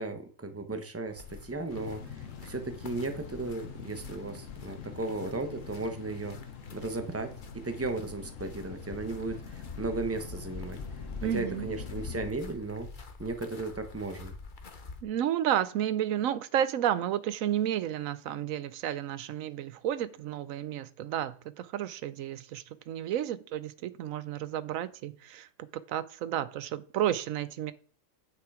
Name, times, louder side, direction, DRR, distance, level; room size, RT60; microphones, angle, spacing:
voice 1, 0.0-6.4 6.7-7.3 7.6-10.8 11.3-12.9 13.2-14.3, right 3 dB, 10° right, 7 dB, 1.0 m, -35 dB
sound 1, 1.1-15.0, left 4 dB, 40° left, 1.1 m, -46 dB
sound 2, 1.7-12.3, left 7 dB, 75° left, 1.4 m, -45 dB
voice 2, 11.2-11.7 15.0-25.5 25.9-27.7, right 11 dB, 85° right, 16 dB, 1.1 m, -31 dB
9.0 x 6.6 x 4.9 m, 0.42 s
omnidirectional pair, 1.4 m